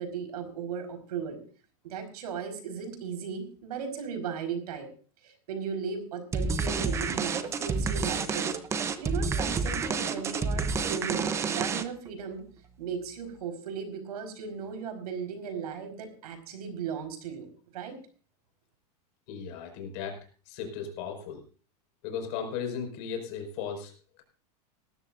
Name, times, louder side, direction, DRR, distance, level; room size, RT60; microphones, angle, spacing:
voice 1, 0.0-1.4 1.8-4.9 5.2-8.6 9.0-12.4 12.8-17.5 17.7-18.0, right 6 dB, 85° right, 6 dB, 4.7 m, -36 dB
sound 1, 6.3-12.1, right 5 dB, 15° right, 0.8 m, -29 dB
voice 2, 19.3-20.2 20.5-21.4 22.0-24.2, left 7 dB, 45° left, 4 dB, 5.5 m, -36 dB
20.0 x 13.5 x 2.6 m, 0.39 s
supercardioid pair, 165°, 19 cm